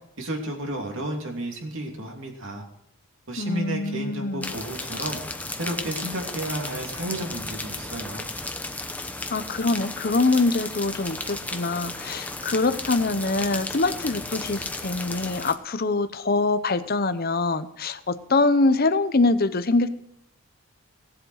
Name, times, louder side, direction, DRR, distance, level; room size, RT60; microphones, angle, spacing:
voice 1, 0.2-2.6 3.3-5.2 5.6-8.3, right 1 dB, 60° right, 1 dB, 3.0 m, -32 dB
voice 2, 3.4-4.5 9.3-19.9, left 3 dB, 45° left, 11 dB, 0.8 m, -24 dB
sound 1, 4.4-15.5, left 2 dB, 5° left, 0.9 m, -34 dB
18.0 x 7.9 x 6.4 m, 0.81 s
head